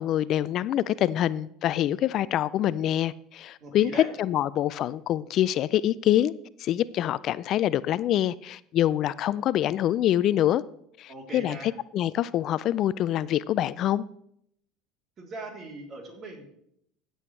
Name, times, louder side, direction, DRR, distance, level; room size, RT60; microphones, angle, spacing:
voice 1, 0.0-6.3 6.6-10.6 11.0-14.0, left 12 dB, 55° left, 0.3 m, -25 dB
voice 2, 3.6-4.1 11.1-11.7 15.2-16.4, right 2 dB, 40° right, 3.2 m, -40 dB
15.5 x 7.8 x 3.2 m
hypercardioid pair, 80°, 0 cm